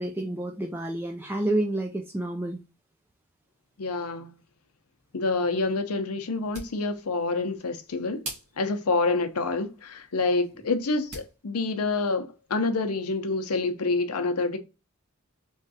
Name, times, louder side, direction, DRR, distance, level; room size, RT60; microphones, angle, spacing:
voice 1, 0.0-2.6, right 1 dB, 10° right, 0.3 m, -29 dB
voice 2, 3.8-4.3 5.1-8.2 8.6-14.6, left 3 dB, 80° left, 0.7 m, -27 dB
sound 1, 6.3-11.4, right 1 dB, 85° right, 1.7 m, -45 dB
3.6 x 3.1 x 2.6 m
head